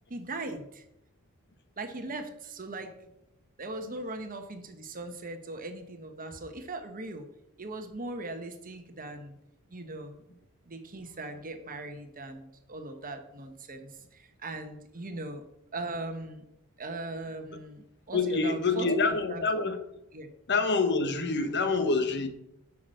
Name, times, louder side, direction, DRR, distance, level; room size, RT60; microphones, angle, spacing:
voice 1, 0.1-0.8 1.8-2.9 3.6-7.2 7.6-9.4 9.7-10.2 10.7-15.4 15.7-16.4 16.8-19.6 20.1-20.3, right 2 dB, 40° right, 1.1 m, -39 dB
voice 2, 18.1-19.8 20.5-22.3, left 4 dB, 50° left, 1.2 m, -26 dB
10.5 x 5.9 x 6.4 m
head